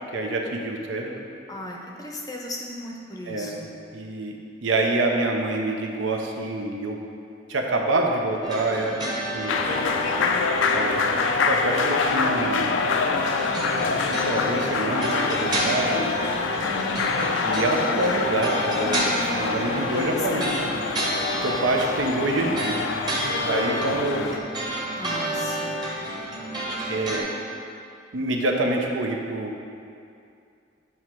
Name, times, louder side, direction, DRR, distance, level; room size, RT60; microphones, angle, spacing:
voice 1, 0.1-1.3 3.3-3.6 3.9-7.0 7.5-9.0 9.3-9.6 10.7-12.7 14.1-16.2 17.4-20.5 21.4-22.9 23.5-24.3 26.9-27.3 28.1-29.7, right 2 dB, 90° right, 2 dB, 0.6 m, -26 dB
voice 2, 1.5-3.7 16.6-17.1 20.0-20.5 24.9-25.8, left 1 dB, 20° left, -1 dB, 0.5 m, -36 dB
sound 1, 8.4-12.1 13.4-27.2, right 1 dB, 25° right, 0.9 m, -31 dB
sound 2, 9.5-24.4, left 4 dB, 80° left, 0.4 m, -25 dB
8.0 x 2.9 x 4.5 m, 2.5 s
head